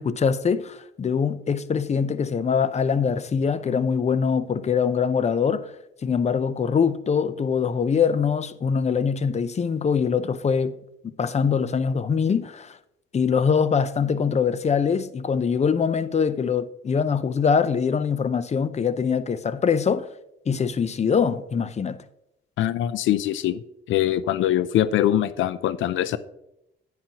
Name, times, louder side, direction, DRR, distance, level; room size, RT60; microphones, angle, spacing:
voice 1, 0.0-5.7 6.0-10.8 11.0-12.8 13.1-20.1 20.5-22.0, left 6 dB, 35° left, 0.6 m, -23 dB
voice 2, 22.6-23.6 23.9-26.2, left 12 dB, 75° left, 0.5 m, -23 dB
10.0 x 9.3 x 2.9 m
cardioid pair, 90°, 20 cm